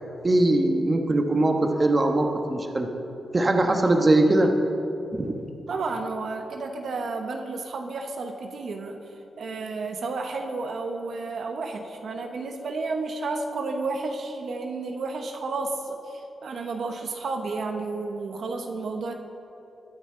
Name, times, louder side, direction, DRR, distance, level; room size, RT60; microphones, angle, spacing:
voice 1, 0.2-2.9 3.3-4.5 5.1-5.4, right 2 dB, 30° right, 4 dB, 1.1 m, -21 dB
voice 2, 5.7-9.0 9.4-19.1, right 3 dB, 70° right, 4 dB, 1.0 m, -31 dB
21.5 x 9.2 x 3.8 m, 2.8 s
wide cardioid pair, 110°, 0 cm